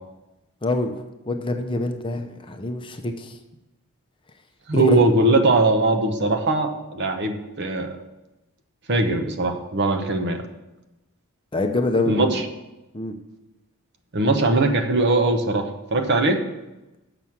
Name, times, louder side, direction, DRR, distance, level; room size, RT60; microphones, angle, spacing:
voice 1, 0.6-3.4 4.7-5.0 11.5-12.4 12.9-13.1, left 2 dB, 25° left, 5 dB, 0.7 m, -25 dB
voice 2, 4.7-8.0 8.9-10.4 12.1-12.4 14.1-16.4, right 2 dB, 50° right, 5 dB, 0.9 m, -20 dB
6.8 x 6.1 x 7.2 m, 1.0 s
head